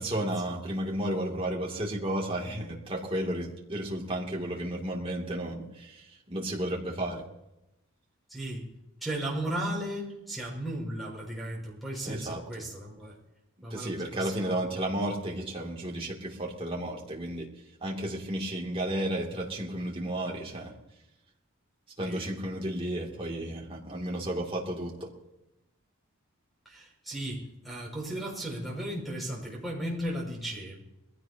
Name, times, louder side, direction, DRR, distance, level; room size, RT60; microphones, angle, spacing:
voice 1, 0.0-7.2 12.1-12.4 13.7-17.5 17.8-20.7 22.0-25.1, right 1 dB, 25° right, -2 dB, 2.6 m, -33 dB
voice 2, 8.3-8.6 9.0-13.2 13.6-14.7 22.0-22.3 26.6-30.8, right 1 dB, ahead, -2 dB, 5.9 m, -36 dB
22.0 x 16.0 x 2.9 m, 0.92 s
head